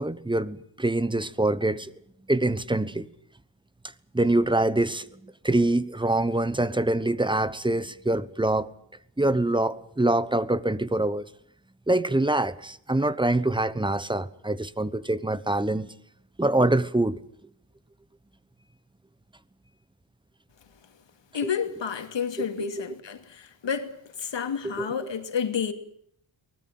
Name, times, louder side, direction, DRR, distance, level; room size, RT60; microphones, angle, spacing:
voice 1, 0.0-1.9 2.3-3.1 4.1-5.0 5.4-8.7 9.2-11.2 11.9-15.9 16.4-17.2 21.4-21.5 22.4-22.9 24.6-24.9, right 2 dB, 10° right, 1.0 m, -25 dB
voice 2, 21.3-25.7, left 7 dB, 65° left, 2.7 m, -30 dB
23.5 x 20.0 x 7.7 m
wide cardioid pair, 145°, 47 cm